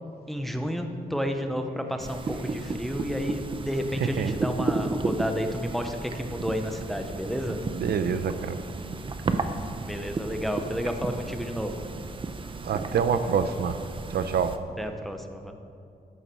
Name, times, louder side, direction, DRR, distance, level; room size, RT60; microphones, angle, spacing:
voice 1, 0.3-7.6 9.8-11.8 14.8-15.5, equal, ahead, 5 dB, 0.8 m, -31 dB
sound 1, 2.0-14.6, right 3 dB, 30° right, 0.6 m, -33 dB
voice 2, 7.8-8.6 12.6-13.8 14.1-14.6, right 6 dB, 80° right, 10 dB, 0.7 m, -26 dB
14.0 x 7.2 x 6.2 m, 2.6 s
wide cardioid pair, 175°, 17 cm